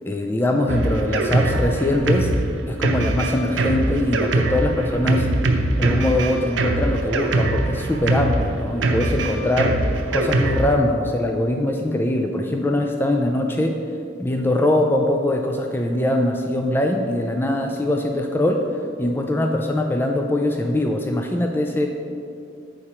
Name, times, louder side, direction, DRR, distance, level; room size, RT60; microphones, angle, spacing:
voice 1, 0.0-2.3 2.7-5.3 5.8-9.8 10.1-13.8 14.2-21.9, left 1 dB, 10° left, 3 dB, 0.3 m, -22 dB
Drum kit, 0.7-10.8, right 2 dB, 90° right, 0.7 m, -22 dB
8.3 x 4.9 x 4.3 m, 2.4 s
head